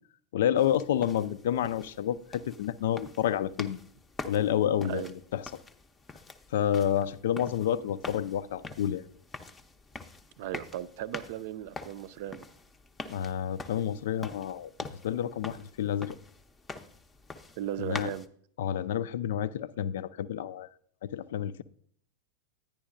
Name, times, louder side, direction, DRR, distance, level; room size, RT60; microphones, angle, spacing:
voice 1, 0.3-3.8 4.3-5.5 6.5-9.0 13.1-14.7 15.0-16.2 17.8-18.1 18.6-20.7 21.0-21.6, left 10 dB, 55° left, 0.4 m, -29 dB
sound 1, 0.6-18.3, left 3 dB, 15° left, 0.6 m, -45 dB
voice 2, 10.4-12.4 17.6-18.3, right 12 dB, 50° right, 0.4 m, -36 dB
10.5 x 10.0 x 2.5 m
figure-of-eight pair, 90°, 0 cm